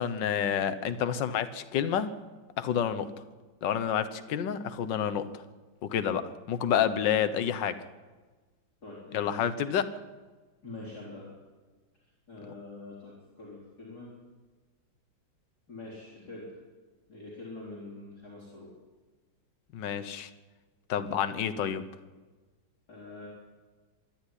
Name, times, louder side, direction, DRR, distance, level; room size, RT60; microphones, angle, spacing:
voice 1, 0.0-2.2 2.6-3.2 3.6-5.4 5.8-7.8 9.1-9.9 19.7-20.3 20.9-21.9, left 8 dB, 65° left, 10 dB, 1.6 m, -29 dB
voice 2, 8.8-9.4 10.6-11.3 12.3-14.1 15.7-16.6 17.1-18.7 22.9-23.3, left 2 dB, 50° left, -5 dB, 4.7 m, -44 dB
25.0 x 10.5 x 9.9 m, 1.3 s
omnidirectional pair, 2.2 m